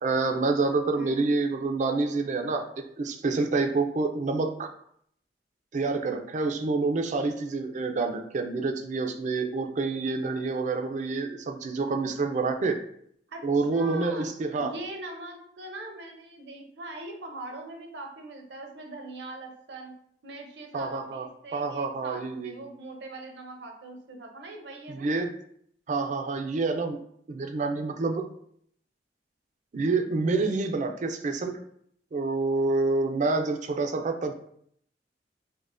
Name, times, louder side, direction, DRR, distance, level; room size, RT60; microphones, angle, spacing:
voice 1, 0.0-2.7 3.0-4.7 5.7-12.8 13.4-14.7 20.7-22.5 24.9-25.3 25.9-27.0 27.3-28.2 29.7-31.6 32.1-34.3, right 3 dB, 45° right, 6 dB, 0.4 m, -27 dB
voice 2, 1.0-1.3 13.3-14.3 14.6-19.9 20.2-25.1, right 2 dB, 75° right, 2 dB, 0.7 m, -41 dB
5.1 x 2.1 x 2.5 m, 0.67 s
head